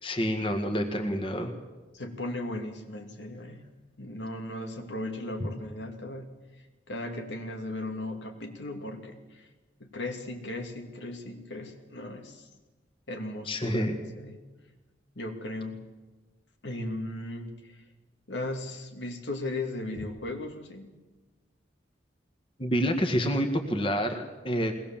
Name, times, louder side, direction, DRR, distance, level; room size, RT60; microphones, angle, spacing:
voice 1, 0.0-1.5 13.5-14.0 22.6-24.7, equal, 30° left, 4 dB, 1.9 m, -28 dB
voice 2, 1.9-3.6 4.0-6.3 6.9-9.5 9.8-12.5 13.1-14.4 15.2-15.9 16.6-17.8 18.3-20.9, left 2 dB, 90° left, 3 dB, 2.6 m, -37 dB
22.0 x 19.0 x 7.4 m, 1.2 s
head